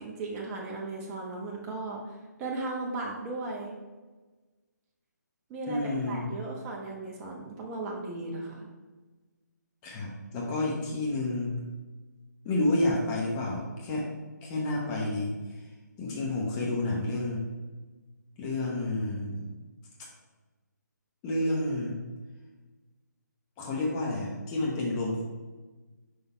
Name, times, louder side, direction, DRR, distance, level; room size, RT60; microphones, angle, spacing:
voice 1, 0.0-2.1 2.4-3.7 5.5-8.7, right 2 dB, 20° right, -2 dB, 1.0 m, -36 dB
voice 2, 5.7-6.3 9.8-11.6 12.4-14.0 14.4-15.3 16.0-17.4 18.4-19.4 21.2-22.0 23.6-25.2, left 2 dB, 20° left, -3 dB, 1.0 m, -30 dB
5.3 x 4.0 x 4.4 m, 1.3 s
figure-of-eight pair, 150°, 10 cm